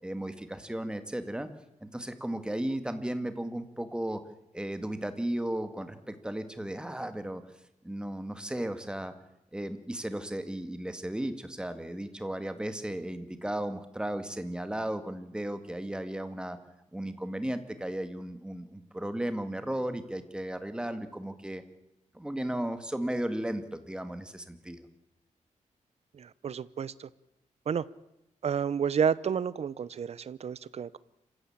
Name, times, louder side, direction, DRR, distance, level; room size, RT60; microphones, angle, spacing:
voice 1, 0.0-1.5 1.8-4.2 4.5-7.4 7.8-9.1 9.5-16.6 16.9-21.6 22.1-24.8, right 1 dB, 5° right, 9 dB, 1.9 m, -35 dB
voice 2, 26.1-27.1 27.7-27.8 28.4-31.0, right 7 dB, 55° right, 18 dB, 0.8 m, -30 dB
27.0 x 15.5 x 8.8 m, 0.87 s
wide cardioid pair, 145°, 13 cm